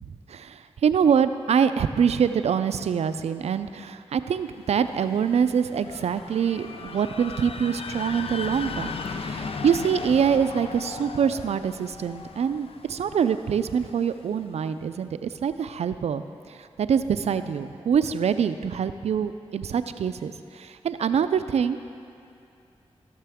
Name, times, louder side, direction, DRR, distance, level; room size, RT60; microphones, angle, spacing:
voice 1, 0.0-21.8, right 7 dB, 80° right, 11 dB, 0.4 m, -25 dB
sound 1, 4.6-14.4, left 5 dB, 60° left, 0.5 m, -37 dB
15.5 x 6.7 x 3.6 m, 2.7 s
cardioid pair, 45°, 11 cm